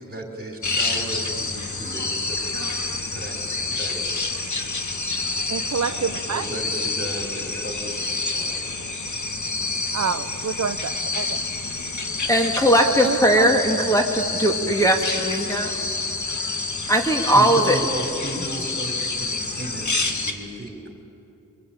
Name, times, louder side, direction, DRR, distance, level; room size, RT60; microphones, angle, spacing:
voice 1, 0.0-2.6 3.1-3.4 3.7-4.1 5.8-8.8 9.4-9.7 17.3-20.9, right 1 dB, 30° right, 3 dB, 4.9 m, -34 dB
sound 1, 0.6-20.3, left 3 dB, 60° left, 2.1 m, -28 dB
voice 2, 5.5-6.4 9.9-11.4 12.8-13.5, right 6 dB, 50° right, 8 dB, 0.7 m, -27 dB
voice 3, 12.3-15.7 16.9-17.8, right 1 dB, 10° left, 1 dB, 2.3 m, -19 dB
28.0 x 23.5 x 8.9 m, 2.6 s
wide cardioid pair, 115°, 33 cm